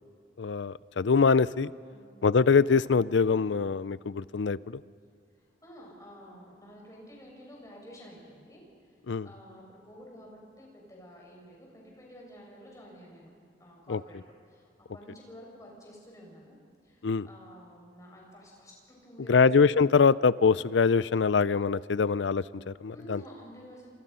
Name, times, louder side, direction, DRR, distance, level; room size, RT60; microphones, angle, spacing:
voice 1, 0.4-1.7 2.2-4.8 9.1-9.3 13.9-14.0 17.0-17.3 19.3-23.2, left 5 dB, 85° left, 18 dB, 0.5 m, -24 dB
voice 2, 5.4-8.9 9.2-13.3 13.6-16.6 16.8-19.5 22.9-23.9, equal, 20° left, -2 dB, 6.3 m, -50 dB
28.0 x 27.0 x 5.6 m, 2.1 s
head